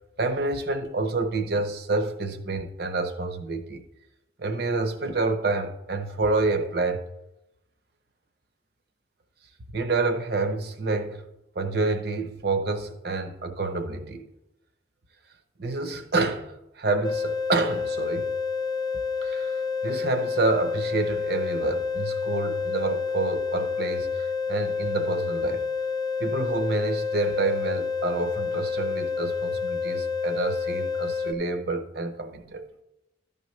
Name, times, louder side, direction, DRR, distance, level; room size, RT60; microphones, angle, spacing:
voice 1, 0.2-3.8 4.4-7.0 9.7-11.2 11.5-14.3 15.6-18.3 19.2-25.6 26.2-32.7, right 3 dB, 55° right, 0.8 m, -28 dB
sound 1, 17.0-31.3, left 5 dB, 25° left, 0.4 m, -29 dB
12.5 x 6.8 x 3.2 m
head